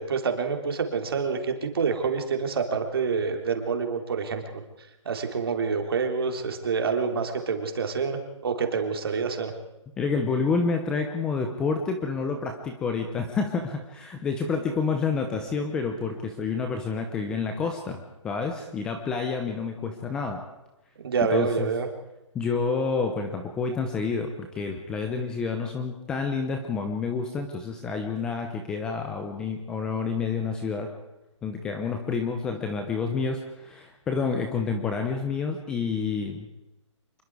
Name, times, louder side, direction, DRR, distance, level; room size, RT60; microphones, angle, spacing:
voice 1, 0.0-4.6 5.0-9.5 21.0-21.9, right 5 dB, 50° right, 4 dB, 3.3 m, -27 dB
voice 2, 10.0-20.4 21.3-21.7 22.3-30.9 31.4-36.5, left 5 dB, 5° left, 4 dB, 0.6 m, -29 dB
26.0 x 22.0 x 4.8 m, 0.99 s
hypercardioid pair, 170°, 16 cm